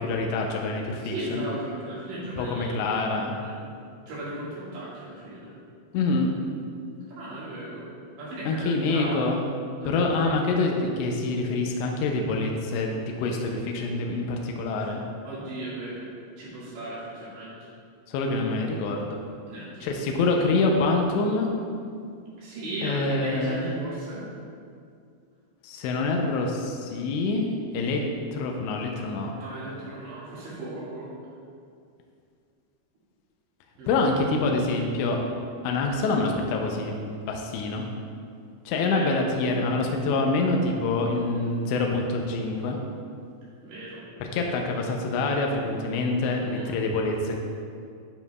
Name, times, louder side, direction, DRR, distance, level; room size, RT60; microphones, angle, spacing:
voice 1, 0.0-1.5 2.4-3.3 5.9-6.3 8.5-9.4 9.8-12.9 13.2-15.0 18.1-19.2 19.8-21.5 22.8-23.7 25.6-28.1 28.3-29.3 33.9-35.2 35.6-36.9 37.2-37.9 38.7-42.8 44.2-47.3, left 3 dB, 80° left, 1 dB, 2.7 m, -26 dB
voice 2, 1.0-2.9 3.4-3.6 4.1-5.5 7.1-7.9 8.2-9.3 9.8-10.3 14.8-15.0 15.2-16.1 16.4-17.7 19.5-19.9 22.4-24.2 29.3-31.1 33.8-34.0 38.7-39.2 43.6-44.0 46.3-46.7 47.2-47.3, right 1 dB, 70° right, -9 dB, 4.1 m, -36 dB
9.9 x 7.2 x 2.3 m, 2.3 s
omnidirectional pair, 5.4 m